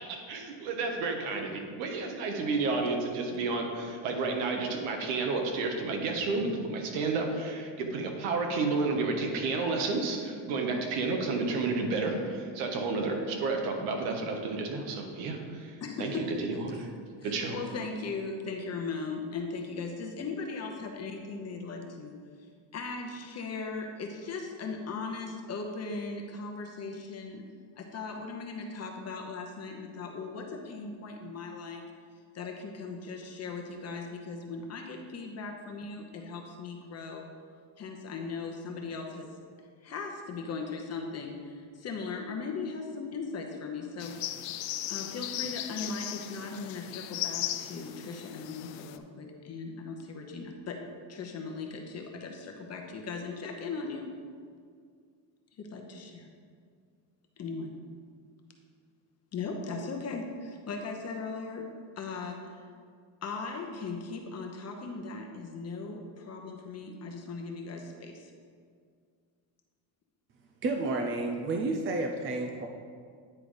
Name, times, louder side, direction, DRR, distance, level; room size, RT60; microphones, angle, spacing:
voice 1, 0.0-16.8 17.2-17.5, right 3 dB, 85° right, 2 dB, 1.4 m, -31 dB
voice 2, 15.8-16.8 17.2-22.2 22.7-27.4 27.8-31.8 32.3-37.3 37.8-39.3 39.8-44.2 44.9-50.8 51.1-54.1 55.6-56.3 57.4-57.7 59.3-61.7 62.0-62.6 63.2-68.3, left 4 dB, 30° left, 3 dB, 0.9 m, -38 dB
sound 1, 44.0-49.0, left 13 dB, 90° left, 0.6 m, -37 dB
voice 3, 70.6-72.7, right 2 dB, 25° right, 3 dB, 0.4 m, -30 dB
9.7 x 3.9 x 4.9 m, 2.1 s
cardioid pair, 125°, 48 cm